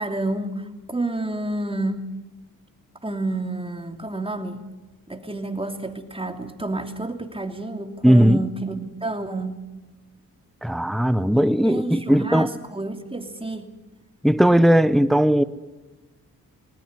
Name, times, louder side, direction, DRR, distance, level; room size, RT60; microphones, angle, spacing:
voice 1, 0.0-2.0 3.0-4.7 5.1-9.7 11.3-13.7, right 2 dB, 15° right, 2.8 m, -29 dB
voice 2, 8.0-8.4 10.6-12.5 14.2-15.4, equal, ahead, 0.9 m, -17 dB
19.5 x 19.5 x 9.6 m
cardioid pair, 60°, 36 cm